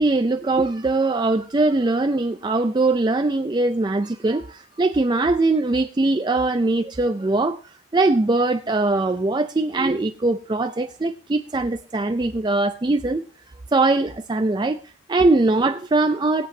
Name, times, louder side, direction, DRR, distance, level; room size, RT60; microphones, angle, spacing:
voice 1, 0.0-7.6 7.9-13.2 13.7-16.5, right 2 dB, 20° right, 0.4 m, -21 dB
21.0 x 7.8 x 2.8 m
head